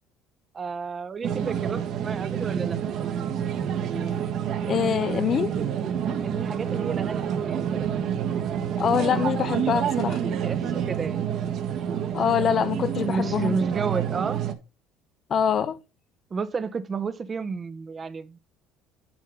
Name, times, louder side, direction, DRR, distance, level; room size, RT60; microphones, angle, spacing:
voice 1, 0.5-2.8 6.2-7.9 10.3-11.3 13.0-14.4 16.3-18.4, right 5 dB, 30° right, 0.9 m, -31 dB
sound 1, 1.2-14.5, right 8 dB, 60° right, 1.5 m, -28 dB
voice 2, 4.7-5.5 8.8-10.2 12.1-13.6 15.3-15.8, left 8 dB, 45° left, 0.7 m, -24 dB
10.5 x 3.7 x 5.3 m
supercardioid pair, 100°, 0 cm